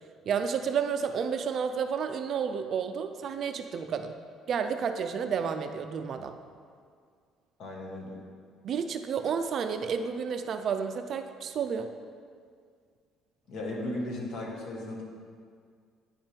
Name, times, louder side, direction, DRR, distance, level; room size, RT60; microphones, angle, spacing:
voice 1, 0.3-4.1 4.5-6.4 8.6-11.9, right 6 dB, 45° right, 8 dB, 0.3 m, -31 dB
voice 2, 7.6-8.2 13.5-15.0, left 1 dB, 55° left, -1 dB, 1.3 m, -36 dB
9.4 x 3.4 x 4.4 m, 2.1 s
cardioid pair, 140°, 0 cm